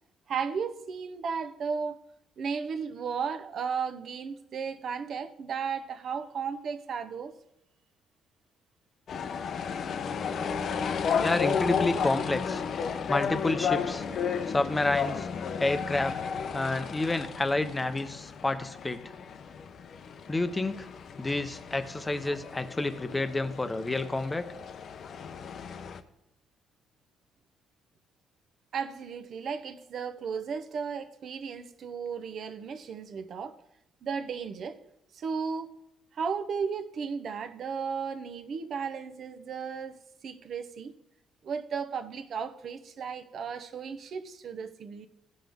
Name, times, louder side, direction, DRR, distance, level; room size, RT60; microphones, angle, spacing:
voice 1, 0.3-2.0 2.4-7.4 28.7-33.6 34.0-34.8 35.1-35.7 36.1-40.9 41.4-45.1, right 6 dB, 50° right, 0.8 m, -35 dB
sound 1, 9.1-26.0, left 6 dB, 50° left, 0.7 m, -33 dB
voice 2, 11.2-12.6 13.1-14.0 14.5-15.3 15.6-16.2 16.5-19.0 20.3-20.9 21.2-24.5, left 2 dB, 15° left, 0.7 m, -29 dB
15.5 x 5.8 x 3.5 m
cardioid pair, 120°, 0 cm